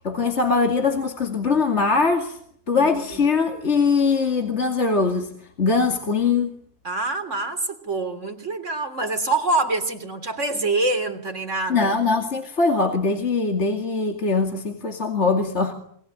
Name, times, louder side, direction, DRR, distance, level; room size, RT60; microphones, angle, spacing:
voice 1, 0.0-2.4 2.7-5.3 5.6-6.6 11.7-15.7, left 4 dB, 45° left, 3 dB, 2.8 m, -21 dB
voice 2, 2.7-3.2 6.8-11.9, right 2 dB, 50° right, 7 dB, 3.7 m, -26 dB
28.5 x 23.0 x 8.8 m, 0.67 s
omnidirectional pair, 1.6 m